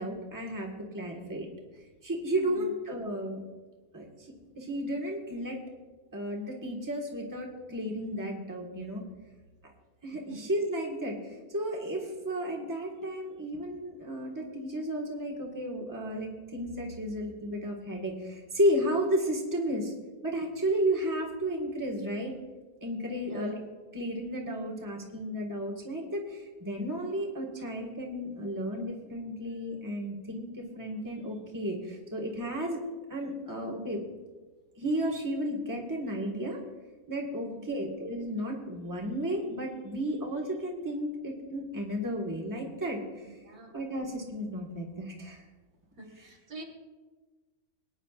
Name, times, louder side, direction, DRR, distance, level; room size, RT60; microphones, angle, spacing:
voice 1, 0.0-1.5 2.0-3.4 3.9-5.6 6.1-9.0 10.0-11.2 11.5-19.9 20.2-22.3 22.8-23.6 23.9-32.8 33.1-34.0 34.8-36.6 37.1-43.0 43.7-45.4 46.1-46.3, equal, 15° right, -1 dB, 1.6 m, -33 dB
voice 2, 37.4-37.8 43.3-43.7 46.0-46.6, right 2 dB, 75° right, 0 dB, 2.1 m, -46 dB
22.0 x 9.8 x 2.5 m, 1.3 s
omnidirectional pair, 1.5 m